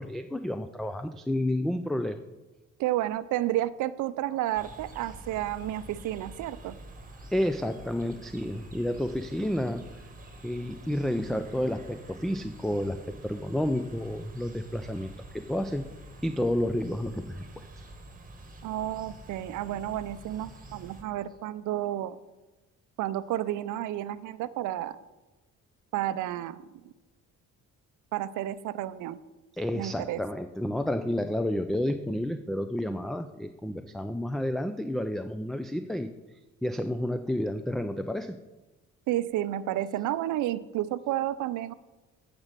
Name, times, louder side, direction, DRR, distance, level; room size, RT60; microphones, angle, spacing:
voice 1, 0.0-2.2 7.3-10.0 10.4-15.9 16.2-17.7 29.6-36.1 36.6-38.4, left 1 dB, ahead, 9 dB, 0.3 m, -30 dB
voice 2, 2.8-6.8 18.6-22.2 23.0-25.0 25.9-26.7 28.1-29.2 29.7-30.2 39.1-41.7, right 13 dB, 80° right, 15 dB, 0.5 m, -31 dB
sound 1, 4.6-21.0, right 1 dB, 30° right, 1.5 m, -47 dB
7.9 x 5.2 x 7.3 m, 1.1 s
cardioid pair, 90°, 30 cm